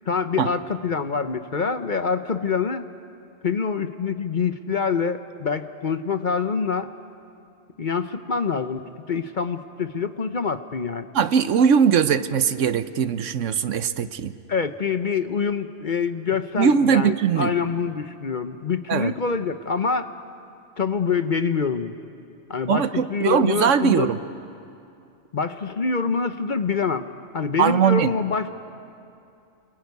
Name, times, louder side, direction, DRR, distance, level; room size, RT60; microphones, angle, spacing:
voice 1, 0.1-2.9 3.4-6.9 7.8-11.1 14.5-20.1 20.8-21.9 22.5-24.1 25.3-27.1 27.3-28.5, left 5 dB, 45° left, 9 dB, 0.9 m, -25 dB
voice 2, 11.1-14.3 16.6-17.5 18.9-19.1 22.7-24.2 27.6-28.1, right 7 dB, 75° right, 12 dB, 1.2 m, -20 dB
29.0 x 20.5 x 9.5 m, 2.6 s
omnidirectional pair, 1.3 m